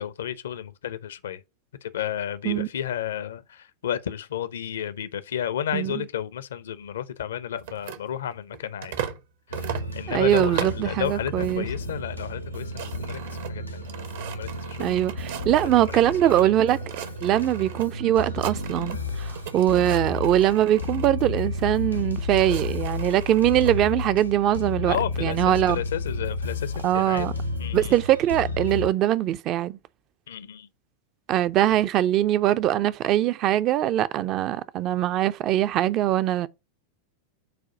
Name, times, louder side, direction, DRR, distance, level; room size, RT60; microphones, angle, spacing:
voice 1, 0.0-1.4 1.8-8.9 9.5-13.2 13.5-13.8 14.3-15.0 16.2-16.5 24.9-27.3 27.6-27.9 30.3-30.7, left 10 dB, 65° left, 0.6 m, -32 dB
voice 2, 5.7-6.0 10.1-11.7 14.8-16.8 17.2-25.8 26.8-27.3 27.7-29.8 31.3-36.5, right 13 dB, 35° right, 0.4 m, -22 dB
sound 1, 7.6-9.2 9.5-10.9 11.4-11.8 12.1-12.2 12.5-16.5 16.8-17.9 18.2-19.1 19.3-21.1 21.9-23.7, right 9 dB, 55° right, 0.8 m, -37 dB
sound 2, 9.5-28.9, left 2 dB, 90° left, 0.9 m, -32 dB
7.6 x 2.6 x 4.9 m
figure-of-eight pair, 90°, 0 cm